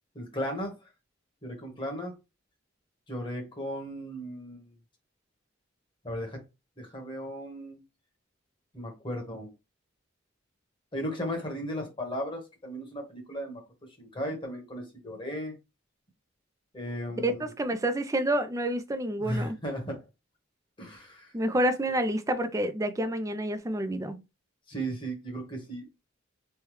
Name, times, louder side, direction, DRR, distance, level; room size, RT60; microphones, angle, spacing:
voice 1, 0.1-0.8 1.4-2.1 3.1-4.7 6.0-6.4 6.8-7.8 8.7-9.5 10.9-13.6 14.0-15.5 16.7-17.5 19.2-20.0 20.8-21.3 24.7-25.8, equal, 25° left, 1.1 m, -36 dB
voice 2, 17.2-19.6 21.3-24.2, right 1 dB, 15° right, 0.4 m, -28 dB
3.2 x 2.2 x 3.1 m
head